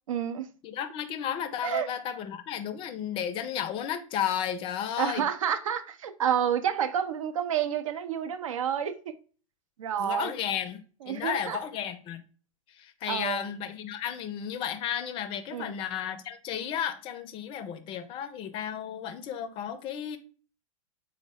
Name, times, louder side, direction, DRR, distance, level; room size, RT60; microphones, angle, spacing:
voice 1, 0.1-0.5 1.6-1.9 5.0-9.1 9.8-10.3 11.0-11.6 13.1-13.5 15.5-15.7, right 9 dB, 70° right, 0.5 m, -29 dB
voice 2, 0.6-5.2 10.0-12.2 12.7-20.2, left 9 dB, 30° left, 0.4 m, -33 dB
3.5 x 2.1 x 3.4 m
figure-of-eight pair, 95°, 18 cm